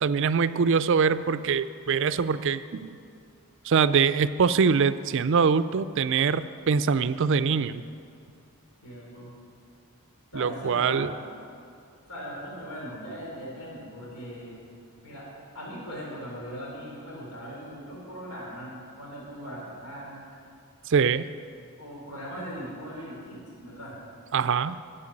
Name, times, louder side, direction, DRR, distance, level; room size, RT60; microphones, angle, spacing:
voice 1, 0.0-3.0 3.6-7.8 10.3-11.1 20.9-21.2 24.3-24.8, right 6 dB, 55° right, 14 dB, 0.4 m, -23 dB
voice 2, 8.8-9.3 10.3-11.2 12.1-14.6 15.0-15.3 15.5-20.2 21.8-24.0, equal, 85° left, -5 dB, 3.9 m, -39 dB
12.0 x 7.9 x 8.7 m, 2.4 s
head